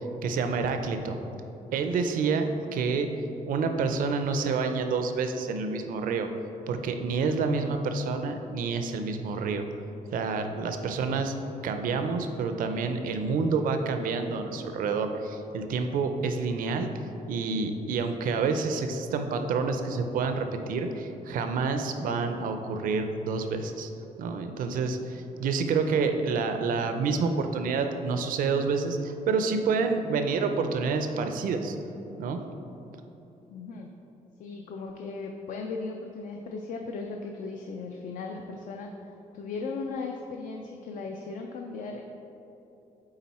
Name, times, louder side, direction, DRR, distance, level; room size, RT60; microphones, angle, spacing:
voice 1, 0.2-1.2 1.7-3.1 3.5-6.3 6.7-9.6 10.1-11.3 11.6-16.9 17.3-23.9 24.2-31.8 32.2-32.4, right 4 dB, 75° right, 7 dB, 0.6 m, -28 dB
voice 2, 10.7-11.2 33.5-34.0 34.4-38.9 39.3-42.0, left 4 dB, 65° left, 2 dB, 0.5 m, -37 dB
8.8 x 3.8 x 4.2 m, 3.0 s
cardioid pair, 150°, 14 cm